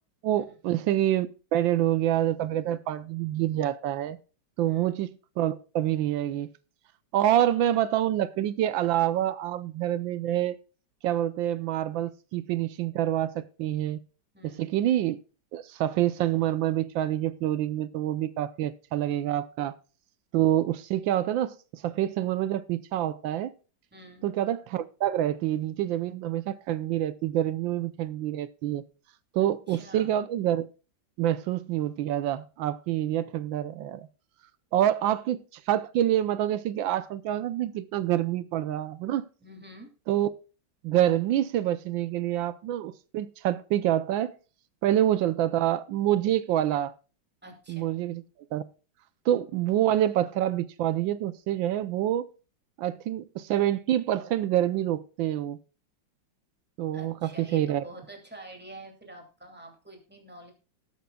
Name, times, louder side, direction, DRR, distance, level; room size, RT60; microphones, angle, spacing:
voice 1, 0.2-4.2 4.6-6.5 7.1-10.6 11.0-14.0 14.4-15.2 15.5-19.7 20.3-23.5 24.2-28.8 29.3-30.6 31.2-34.1 34.7-39.3 40.1-40.3 40.8-44.3 44.8-46.9 47.7-48.2 48.5-48.6 49.3-52.3 52.8-55.6 56.8-57.8, right 12 dB, 85° right, 1.4 m, -27 dB
voice 2, 14.3-14.7 23.9-24.3 29.7-30.1 39.4-39.9 47.4-47.9 56.9-60.5, right 1 dB, 5° right, 2.6 m, -47 dB
19.5 x 8.4 x 2.3 m
omnidirectional pair, 2.0 m